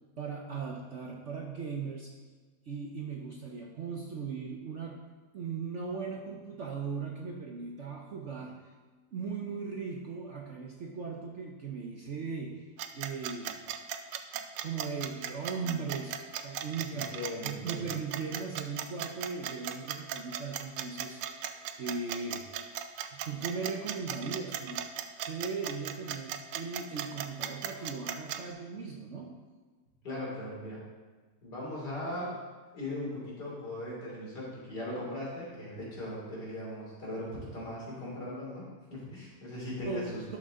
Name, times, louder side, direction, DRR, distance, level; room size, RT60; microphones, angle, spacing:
voice 1, 0.2-2.1 2.7-5.1 5.3-8.6 9.1-12.7 12.9-13.6 14.3-17.2 17.4-22.5 23.1-24.9 25.2-29.3 39.8-40.4, right 5 dB, 55° right, 0 dB, 0.9 m, -38 dB
sound 1, 12.8-28.4, right 10 dB, 90° right, 1.3 m, -37 dB
voice 2, 16.9-17.9 30.0-30.8 31.4-32.4 32.7-40.4, left 1 dB, 65° left, -5 dB, 3.6 m, -39 dB
11.5 x 6.4 x 3.7 m, 1.4 s
omnidirectional pair, 1.9 m